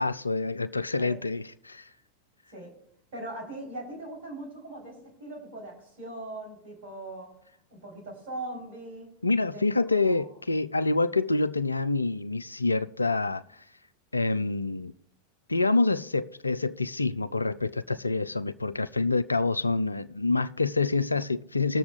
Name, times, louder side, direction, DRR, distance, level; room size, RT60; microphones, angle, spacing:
voice 1, 0.0-1.9 9.2-13.4 14.1-14.9 15.5-21.8, left 3 dB, 80° left, 0.4 m, -27 dB
voice 2, 3.1-7.3 7.7-9.1 9.5-9.7 10.0-10.3, right 1 dB, 55° right, 4.2 m, -40 dB
20.5 x 6.9 x 2.6 m
figure-of-eight pair, 90°, 0 cm